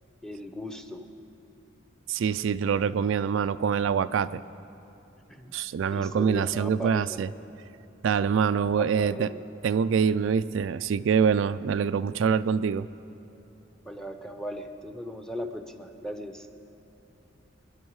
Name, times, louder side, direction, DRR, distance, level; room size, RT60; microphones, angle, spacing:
voice 1, 0.2-1.0 5.4-5.5 5.9-7.2 8.8-9.4 13.9-16.5, equal, 5° left, 6 dB, 0.7 m, -37 dB
voice 2, 2.1-4.4 5.5-7.3 8.0-9.3 9.6-12.9, right 6 dB, 80° right, 13 dB, 0.3 m, -25 dB
24.5 x 11.0 x 4.7 m, 2.9 s
head